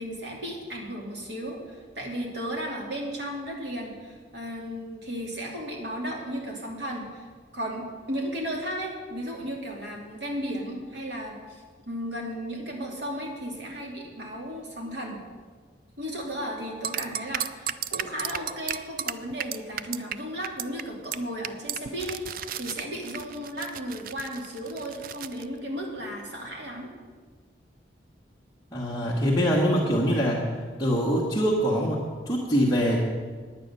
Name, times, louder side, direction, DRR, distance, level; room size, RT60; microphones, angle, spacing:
voice 1, 0.0-7.3 7.5-15.2 16.0-26.9, equal, 70° right, -1 dB, 2.4 m, -35 dB
sound 1, 16.8-20.2 20.4-20.8 21.1-21.2 21.4-25.4, right 10 dB, 50° right, 0.3 m, -33 dB
voice 2, 28.7-30.5 30.8-33.0, equal, 20° left, -6 dB, 1.3 m, -24 dB
9.9 x 8.9 x 6.6 m, 1.5 s
head